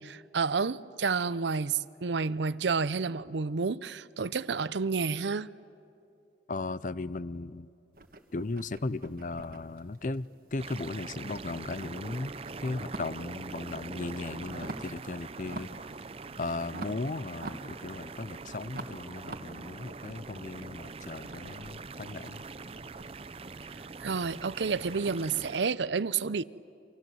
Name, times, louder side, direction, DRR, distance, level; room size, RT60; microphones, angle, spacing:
voice 1, 0.0-5.5 24.0-26.4, right 5 dB, 80° right, 0.6 m, -30 dB
voice 2, 6.5-7.7 8.3-12.3 12.6-15.7 16.4-22.4, left 3 dB, 45° left, 0.6 m, -36 dB
sound 1, 7.9-10.8 11.1-13.4 13.7-15.0 15.4-15.9 16.2-18.2 18.7-24.4, right 2 dB, 50° right, 1.8 m, -46 dB
sound 2, 10.6-25.6, right 4 dB, 30° right, 0.6 m, -43 dB
29.0 x 26.5 x 7.8 m
head